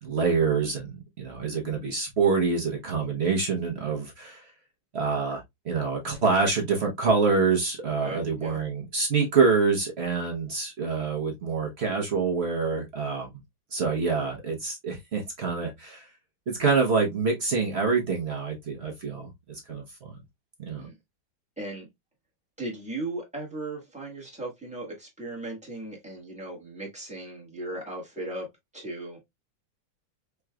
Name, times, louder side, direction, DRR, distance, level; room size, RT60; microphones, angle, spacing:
voice 1, 0.0-4.5 4.9-13.4 13.7-16.1 16.5-20.2 20.6-20.9, right 4 dB, 50° right, 0.8 m, -26 dB
voice 2, 8.0-8.6 20.8-20.9 21.6-21.9 22.6-28.5 28.7-29.2, right 2 dB, 5° right, 1.2 m, -37 dB
4.7 x 3.0 x 2.2 m
omnidirectional pair, 2.0 m